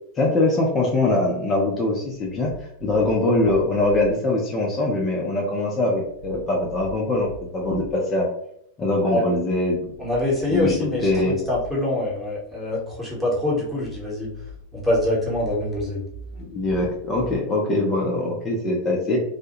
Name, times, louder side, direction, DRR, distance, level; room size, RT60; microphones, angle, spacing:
voice 1, 0.2-2.5 2.8-8.3 8.8-10.0 10.5-11.4 16.4-19.2, left 2 dB, 25° left, -2 dB, 0.5 m, -22 dB
sound 1, 2.1-4.1 5.9-7.9 9.8-11.7 13.6-17.4, left 1 dB, 40° right, 0.8 m, -41 dB
voice 2, 10.0-14.3 14.7-16.1, left 1 dB, ahead, -6 dB, 1.0 m, -24 dB
2.2 x 2.0 x 2.9 m, 0.74 s
figure-of-eight pair, 90°, 0 cm